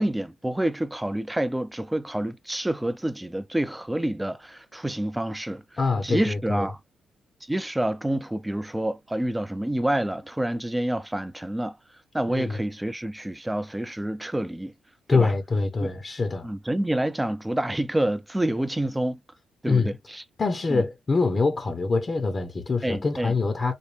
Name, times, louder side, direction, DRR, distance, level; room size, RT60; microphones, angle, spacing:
voice 1, 0.0-5.6 6.0-6.8 7.5-11.8 12.1-14.7 15.1-15.3 15.8-15.9 16.4-19.2 19.6-20.2 20.7-20.8 22.8-23.3, right 1 dB, 10° right, 0.5 m, -28 dB
voice 2, 5.8-6.7 12.3-12.6 15.1-16.5 19.6-19.9 20.4-23.7, left 4 dB, 35° left, 0.8 m, -25 dB
4.1 x 2.2 x 3.2 m
cardioid pair, 90°, 0 cm